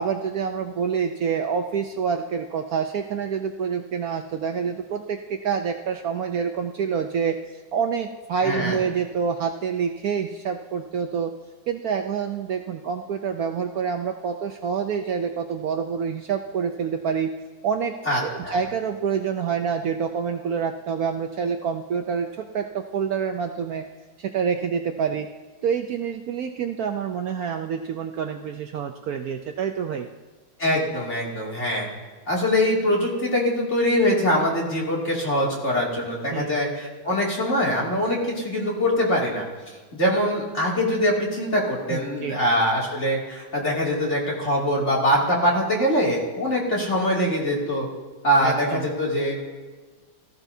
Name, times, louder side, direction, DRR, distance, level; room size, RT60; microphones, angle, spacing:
voice 1, 0.0-11.3 11.7-17.3 17.6-17.9 18.2-23.8 24.2-25.3 25.6-30.1 36.3-36.6 41.9-42.4 48.4-48.9, right 6 dB, 70° right, 5 dB, 0.9 m, -27 dB
voice 2, 8.4-8.8 18.1-18.6 30.6-31.9 32.3-47.9 48.2-49.4, equal, 35° left, -4 dB, 2.8 m, -23 dB
18.5 x 14.0 x 2.7 m, 1.4 s
omnidirectional pair, 2.1 m